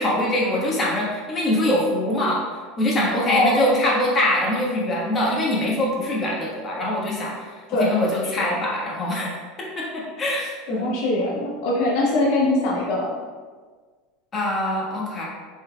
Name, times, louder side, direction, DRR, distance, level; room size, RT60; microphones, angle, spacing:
voice 1, 0.0-2.4 2.8-7.3 7.8-9.3 9.7-10.9 14.3-15.2, left 1 dB, 30° left, -4 dB, 1.3 m, -23 dB
voice 2, 3.2-3.6 7.7-8.0 10.7-13.1, left 2 dB, 65° left, -2 dB, 0.7 m, -22 dB
5.1 x 4.0 x 2.3 m, 1.5 s
supercardioid pair, 110°, 0 cm